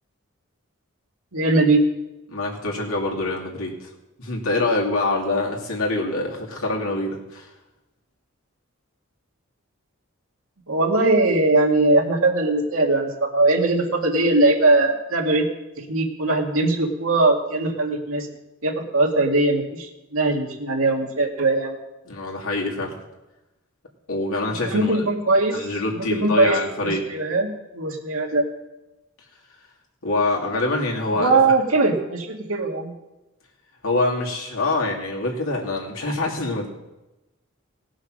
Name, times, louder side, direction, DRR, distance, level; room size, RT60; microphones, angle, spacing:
voice 1, 1.3-1.9 10.7-15.5 15.8-18.3 18.6-21.8 24.6-25.6 25.9-28.5 31.1-32.9, right 2 dB, 80° right, 1 dB, 2.0 m, -20 dB
voice 2, 2.3-3.9 4.2-7.5 22.1-23.0 24.1-25.0 25.5-27.1 30.0-31.4 33.8-36.7, left 2 dB, 85° left, -1 dB, 2.6 m, -25 dB
18.0 x 6.3 x 6.3 m, 1.0 s
head